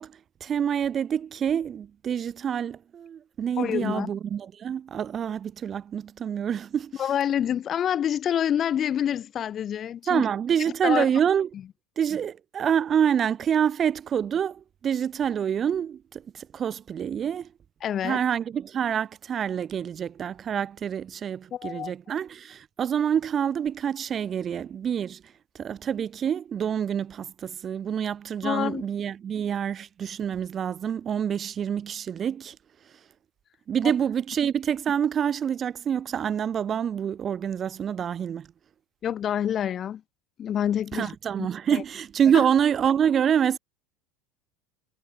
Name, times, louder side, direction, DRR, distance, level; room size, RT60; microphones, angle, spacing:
voice 1, 0.0-7.0 10.1-11.5 12.0-17.5 18.0-25.2 25.6-32.6 33.7-38.5 40.9-43.6, right 8 dB, 25° right, 0.9 m, -27 dB
voice 2, 3.6-4.1 7.0-10.2 10.8-11.1 17.8-18.2 21.5-21.9 28.4-28.9 33.8-33.9 39.0-40.0 40.4-41.1 41.4-41.8 42.3-42.4, left 9 dB, 30° left, 0.9 m, -27 dB
cardioid pair, 160°, 0 cm